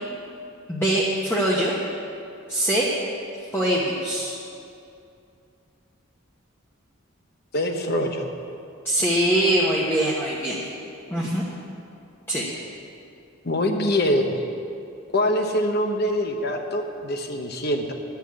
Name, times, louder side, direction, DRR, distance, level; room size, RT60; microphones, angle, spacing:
voice 1, 0.7-1.7 2.5-2.9 3.5-4.4 8.8-10.6 11.1-11.5 12.3-12.4, right 1 dB, 10° left, -6 dB, 1.0 m, -22 dB
voice 2, 7.5-8.3 13.4-14.3 15.1-17.9, left 1 dB, 50° left, 4 dB, 1.0 m, -24 dB
11.5 x 5.8 x 8.6 m, 2.6 s
head